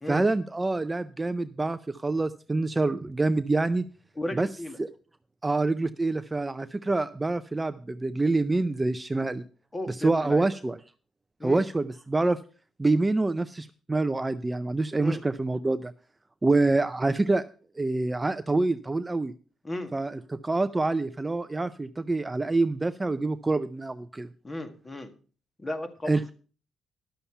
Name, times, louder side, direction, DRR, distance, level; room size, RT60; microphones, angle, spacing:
voice 1, 0.1-3.8 4.4-4.5 4.8-4.9 5.4-9.4 9.9-10.8 11.4-12.4 12.8-15.9 16.4-17.4 17.8-19.3 19.9-24.3 26.1-26.3, right 2 dB, 20° right, 12 dB, 0.5 m, -26 dB
voice 2, 4.2-4.8 9.1-9.2 9.7-10.5 11.4-11.6 15.0-15.2 19.6-19.9 24.4-25.1 25.6-26.3, left 1 dB, 20° left, 8 dB, 1.7 m, -35 dB
11.5 x 6.9 x 5.7 m, 0.39 s
cardioid pair, 90°, 0 cm